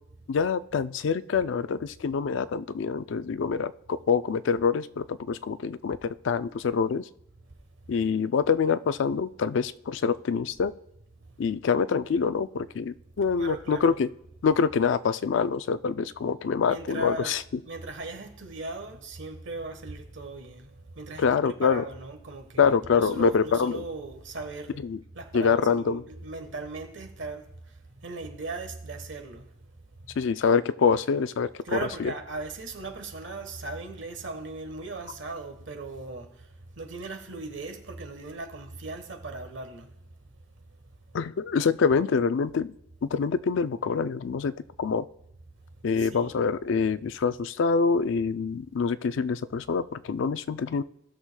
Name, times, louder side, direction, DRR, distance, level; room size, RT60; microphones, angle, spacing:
voice 1, 0.3-7.0 7.9-10.7 11.4-14.1 14.4-17.4 21.2-21.8 22.6-23.8 24.8-25.0 25.3-26.0 30.2-32.1 41.1-42.7 43.0-44.5 44.8-45.1 45.8-50.8, left 5 dB, 70° left, 0.4 m, -25 dB
voice 2, 13.3-14.0 16.7-17.3 17.7-20.7 21.0-24.8 25.1-27.4 28.0-29.4 31.6-36.3 36.8-39.9 46.0-46.3, right 2 dB, 65° right, 1.2 m, -38 dB
17.5 x 6.3 x 2.2 m
head